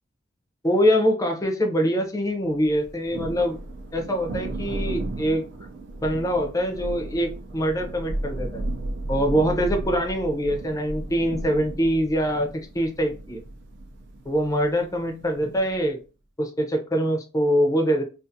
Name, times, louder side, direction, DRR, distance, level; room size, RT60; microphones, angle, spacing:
voice 1, 0.6-3.6 3.9-5.4 6.0-8.7 9.1-13.4 14.3-16.0 16.4-18.0, equal, 20° left, 4 dB, 0.5 m, -24 dB
Thunder, 2.6-15.8, right 2 dB, 65° right, 0.5 m, -34 dB
2.5 x 2.4 x 2.6 m, 0.33 s
head